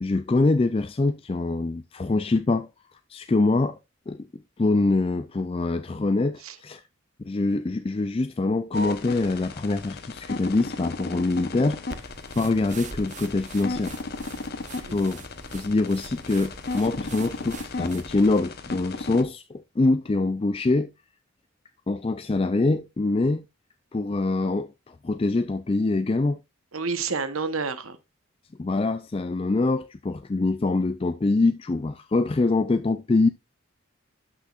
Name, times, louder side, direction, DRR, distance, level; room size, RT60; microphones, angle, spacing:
voice 1, 0.0-2.7 3.1-3.8 4.1-4.3 4.6-6.8 7.2-14.0 14.8-15.2 15.5-20.9 21.9-23.4 23.9-26.4 28.6-33.3, left 3 dB, 25° left, 0.4 m, -24 dB
sound 1, 8.7-19.2, left 3 dB, 50° left, 0.9 m, -35 dB
sound 2, 11.9-18.4, right 4 dB, 35° right, 0.7 m, -44 dB
voice 2, 14.9-15.2 26.7-28.0, right 4 dB, 80° right, 1.1 m, -30 dB
12.0 x 6.2 x 2.4 m
head